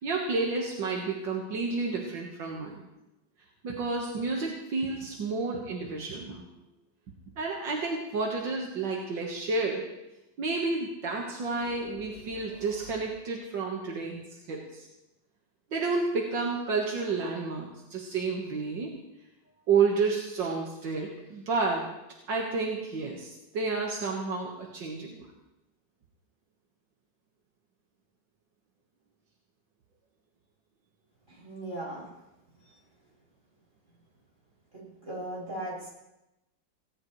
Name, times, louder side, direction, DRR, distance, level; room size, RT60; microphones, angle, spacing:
voice 1, 0.0-2.8 3.6-6.5 7.4-9.9 10.4-14.9 15.7-18.9 19.7-21.9 22.3-25.3, right 4 dB, 85° right, -1 dB, 2.3 m, -30 dB
sound 1, 11.6-13.5, left 1 dB, 40° left, 6.7 m, -52 dB
voice 2, 31.3-32.1 34.7-35.9, right 1 dB, 45° right, -6 dB, 7.4 m, -38 dB
18.5 x 17.0 x 3.3 m, 0.95 s
omnidirectional pair, 1.9 m